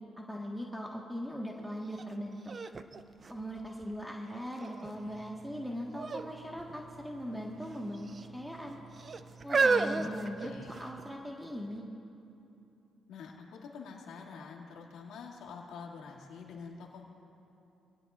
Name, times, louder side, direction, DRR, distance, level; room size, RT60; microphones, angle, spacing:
voice 1, 0.2-2.4 3.3-8.8 9.4-10.5 10.8-11.8, equal, 5° right, -2 dB, 1.6 m, -40 dB
sound 1, 1.9-2.0 2.5-4.0 4.6-5.1 5.9-6.3 6.6-6.7 7.6-8.3 9.0-11.0 11.8-11.9, right 4 dB, 40° right, 0.6 m, -32 dB
Engine, 4.9-11.1, right 4 dB, 55° right, 4.4 m, -54 dB
voice 2, 9.9-10.8 13.1-17.0, left 5 dB, 85° left, -2 dB, 2.5 m, -47 dB
27.0 x 18.0 x 2.6 m, 2.8 s
cardioid pair, 90°, 0 cm